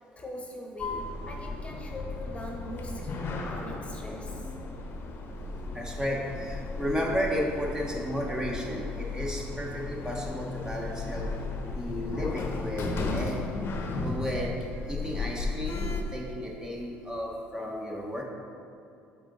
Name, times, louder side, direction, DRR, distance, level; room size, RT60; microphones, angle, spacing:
voice 1, 0.2-4.8, left 1 dB, 25° left, 0 dB, 1.0 m, -41 dB
Sliding door, 0.8-16.0, left 3 dB, 50° left, 0.8 m, -35 dB
voice 2, 5.7-11.3 11.7-13.5 13.8-14.6 14.9-18.2, equal, 15° right, -1 dB, 1.1 m, -33 dB
7.8 x 3.6 x 3.9 m, 2.6 s
hypercardioid pair, 65°, 5 cm